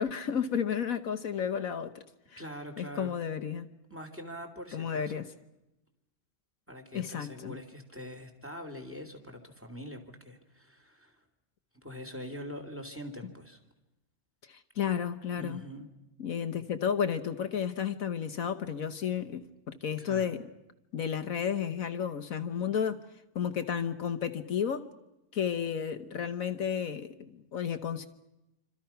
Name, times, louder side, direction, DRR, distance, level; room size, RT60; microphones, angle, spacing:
voice 1, 0.0-2.0 2.3-2.4 2.8-3.7 4.7-5.3 6.9-7.5 14.5-15.6 16.2-19.4 19.8-20.4 20.9-23.0 23.3-24.9 25.3-28.1, left 8 dB, 70° left, 8 dB, 1.4 m, -32 dB
voice 2, 2.4-3.2 3.9-5.2 6.7-11.2 11.8-13.6 15.3-15.9 20.0-20.3, equal, 10° right, 6 dB, 3.0 m, -43 dB
28.0 x 25.5 x 5.8 m, 0.92 s
omnidirectional pair, 1.5 m